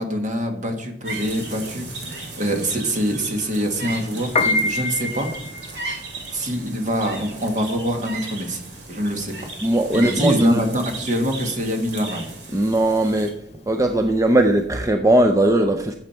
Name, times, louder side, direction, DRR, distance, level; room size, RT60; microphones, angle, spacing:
voice 1, 0.0-5.3 6.3-8.6 8.9-9.5 9.9-12.3, equal, 45° right, 4 dB, 1.8 m, -24 dB
sound 1, 1.0-13.3, right 3 dB, 65° right, 2.5 m, -35 dB
Piano, 4.2-14.6, left 2 dB, 35° left, 0.6 m, -28 dB
voice 2, 9.6-10.6 12.5-13.3 13.7-15.9, right 1 dB, 15° right, 5 dB, 0.5 m, -18 dB
13.5 x 7.4 x 4.5 m, 0.75 s
head